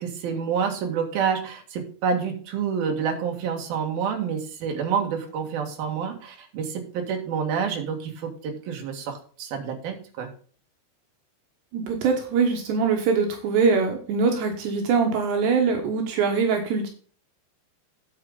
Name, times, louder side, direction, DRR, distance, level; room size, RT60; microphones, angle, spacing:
voice 1, 0.0-10.3, right 6 dB, 60° right, 3 dB, 3.5 m, -28 dB
voice 2, 11.7-16.9, right 5 dB, 75° right, 2 dB, 3.5 m, -23 dB
10.0 x 7.7 x 3.9 m, 0.43 s
omnidirectional pair, 5.1 m